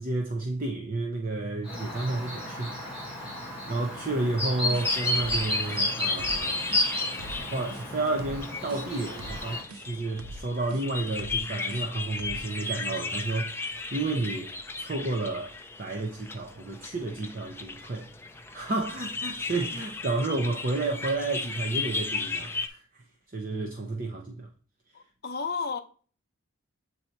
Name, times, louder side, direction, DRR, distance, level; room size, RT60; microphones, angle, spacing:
voice 1, 0.0-6.6 7.5-14.5 14.8-23.0 23.3-24.5, right 2 dB, 40° right, 0.6 m, -31 dB
Chirp tweet, 1.6-9.6, left 1 dB, 5° right, 1.6 m, -32 dB
sound 1, 4.7-22.7, left 4 dB, 10° left, 0.3 m, -36 dB
sound 2, 4.7-12.6, right 2 dB, 80° right, 0.5 m, -44 dB
voice 2, 24.9-25.8, left 5 dB, 45° left, 0.7 m, -32 dB
7.7 x 2.8 x 4.4 m
head